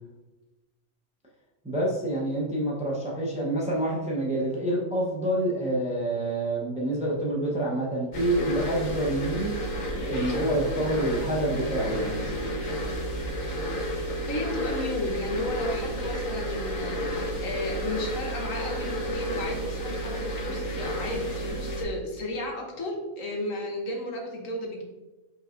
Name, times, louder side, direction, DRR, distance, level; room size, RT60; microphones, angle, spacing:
voice 1, 1.6-9.5 10.0-12.4, right 1 dB, 5° right, -3 dB, 0.6 m, -27 dB
sound 1, 8.1-21.8, equal, 40° left, 0.8 m, -31 dB
voice 2, 14.3-24.8, left 1 dB, 65° left, 1 dB, 1.3 m, -33 dB
5.4 x 3.9 x 2.5 m, 1.1 s
omnidirectional pair, 1.5 m